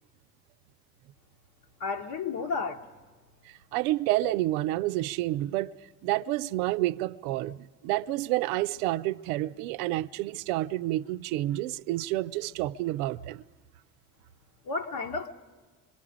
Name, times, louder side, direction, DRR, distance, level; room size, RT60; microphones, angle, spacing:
voice 1, 1.8-2.8 14.7-15.3, left 4 dB, 60° left, 1.1 m, -32 dB
voice 2, 3.5-5.7 6.0-13.4, right 16 dB, 75° right, 0.6 m, -29 dB
26.0 x 23.0 x 5.0 m
hypercardioid pair, 55°, 43 cm